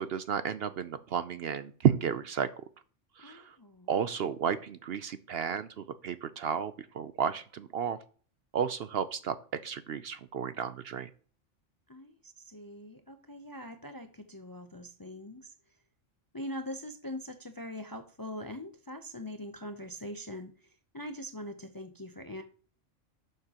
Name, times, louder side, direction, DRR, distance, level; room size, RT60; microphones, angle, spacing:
voice 1, 0.0-2.5 3.2-3.6 3.9-8.0 8.5-9.4 9.6-11.1, right 8 dB, 60° right, 0.7 m, -32 dB
voice 2, 3.2-3.9 11.9-15.5 16.3-22.4, left 1 dB, 25° left, 0.5 m, -42 dB
11.5 x 6.6 x 2.9 m
omnidirectional pair, 1.3 m